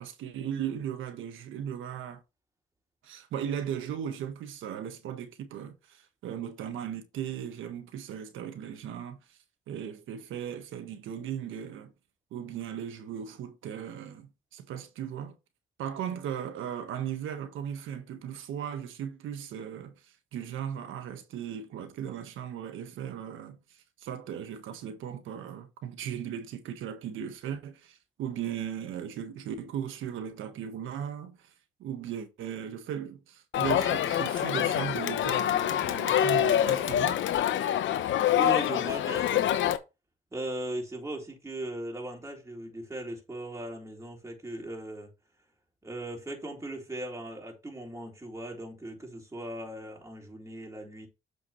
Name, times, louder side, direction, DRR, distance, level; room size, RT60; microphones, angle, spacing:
voice 1, 0.0-2.2 3.0-9.4 9.7-11.9 12.3-15.4 15.8-31.5 31.8-37.2, right 9 dB, 85° right, 1.4 m, -37 dB
Crowd, 33.5-39.8, left 10 dB, 75° left, 0.9 m, -26 dB
voice 2, 38.3-39.5 40.3-45.1 45.8-51.1, right 1 dB, 15° right, 3.7 m, -38 dB
8.1 x 6.1 x 3.1 m
cardioid pair, 90°, 20 cm